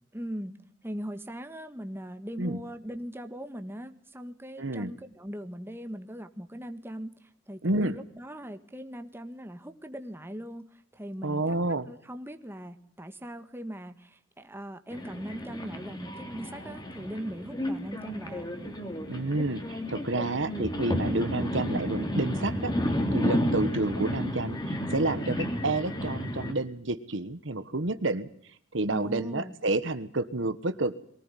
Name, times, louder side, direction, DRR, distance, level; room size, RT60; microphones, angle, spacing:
voice 1, 0.1-0.6 0.8-10.6 10.9-18.5 28.9-29.5, equal, 10° right, 8 dB, 1.7 m, -40 dB
voice 2, 4.6-4.9 7.6-8.0 11.2-11.9 19.1-22.7 23.1-28.3 28.7-31.0, right 2 dB, 65° right, 12 dB, 1.4 m, -29 dB
sound 1, 14.9-26.5, equal, 20° left, 3.1 m, -32 dB
23.0 x 18.5 x 9.2 m, 0.64 s
head